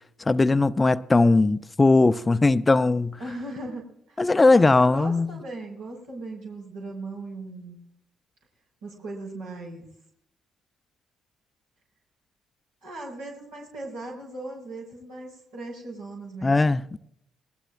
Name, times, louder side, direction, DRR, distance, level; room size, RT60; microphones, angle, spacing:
voice 1, 0.2-3.2 4.2-5.4 16.4-17.0, left 3 dB, 25° left, 0.6 m, -19 dB
voice 2, 3.2-4.2 4.5-7.8 8.8-9.9 12.8-16.6, right 2 dB, 80° right, 6.0 m, -38 dB
21.5 x 19.0 x 2.5 m
hypercardioid pair, 50°, 0 cm